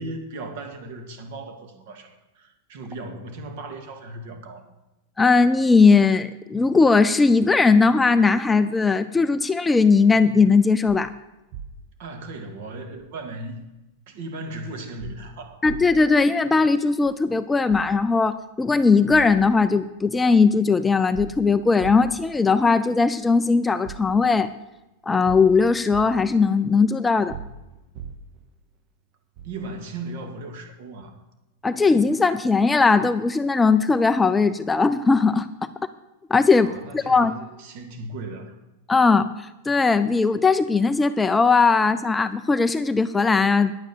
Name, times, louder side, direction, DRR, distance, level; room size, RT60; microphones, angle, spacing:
voice 1, 0.0-4.7 12.0-13.7 14.1-15.6 29.4-31.1 36.5-38.6, right 2 dB, 55° right, 6 dB, 2.2 m, -37 dB
voice 2, 5.2-11.1 15.6-24.5 25.1-27.4 31.6-35.5 36.3-36.7 36.9-37.3 38.9-43.7, left 4 dB, 10° left, 11 dB, 0.4 m, -19 dB
sound 1, 10.9-11.0 11.5-11.8 13.0-13.1 15.0-15.2 15.6-15.9 17.0-17.1 17.7-17.9 19.1-19.3 19.8-19.9 21.1-22.3 23.2-23.3 23.8-24.1 25.2-26.1 27.3-28.4 29.4-29.6, right 7 dB, 35° right, 0.9 m, -38 dB
10.5 x 9.0 x 7.2 m, 0.98 s
supercardioid pair, 155°, 0 cm